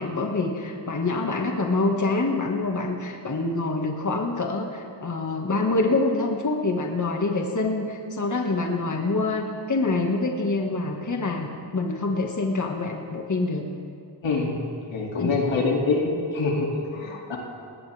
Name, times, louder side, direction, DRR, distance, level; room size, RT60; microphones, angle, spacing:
voice 1, 0.0-11.5 11.7-13.6 15.2-15.4, left 3 dB, 40° left, 1 dB, 2.1 m, -26 dB
voice 2, 14.2-14.6 14.9-16.1 16.3-17.4, left 3 dB, 90° left, -2 dB, 3.0 m, -25 dB
19.5 x 19.0 x 3.6 m, 2.4 s
cardioid pair, 70°, 44 cm